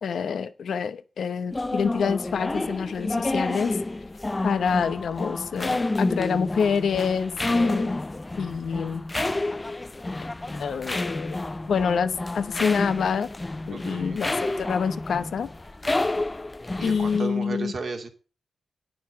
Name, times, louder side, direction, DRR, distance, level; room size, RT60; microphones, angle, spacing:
voice 1, 0.0-3.8 4.4-7.9 8.4-9.0 10.5-13.3 13.7-15.5 16.8-17.7, left 6 dB, 75° left, 0.9 m, -27 dB
sound 1, 1.5-17.2, left 2 dB, 25° left, 0.6 m, -29 dB
voice 2, 13.7-14.2 16.8-18.1, right 3 dB, 60° right, 2.5 m, -34 dB
9.5 x 6.1 x 7.5 m
supercardioid pair, 45°, 0 cm